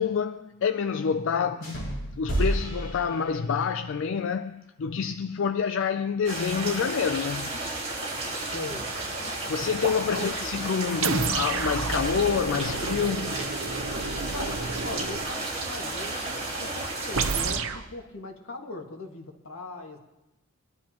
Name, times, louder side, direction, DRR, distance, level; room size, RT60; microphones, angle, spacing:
voice 1, 0.0-1.9 2.2-7.6 9.5-13.4, left 6 dB, 65° left, 0.4 m, -27 dB
sound 1, 1.6-3.8, right 1 dB, 50° left, 6.3 m, -31 dB
voice 2, 3.1-3.5 8.5-8.9 10.0-10.5 14.3-20.0, left 2 dB, 85° left, 1.8 m, -39 dB
sound 2, 6.2-17.5, right 2 dB, 30° right, 4.2 m, -33 dB
sound 3, 11.0-15.3 17.1-17.9, right 4 dB, 70° right, 0.8 m, -30 dB
22.0 x 12.0 x 2.9 m
head